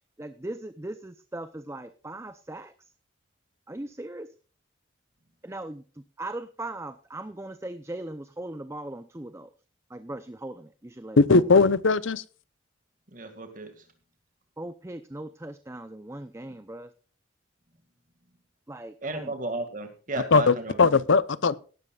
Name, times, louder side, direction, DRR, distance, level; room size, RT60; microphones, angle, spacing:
voice 1, 0.2-2.7 3.7-4.3 5.4-9.5 9.9-11.4 14.6-16.9 18.7-19.3, right 1 dB, 15° right, 12 dB, 0.6 m, -39 dB
voice 2, 11.2-12.2 20.3-21.5, left 4 dB, 80° left, 17 dB, 0.8 m, -19 dB
voice 3, 13.1-13.8 19.0-20.9, right 2 dB, 45° right, 7 dB, 2.1 m, -34 dB
17.0 x 12.5 x 2.4 m, 0.38 s
head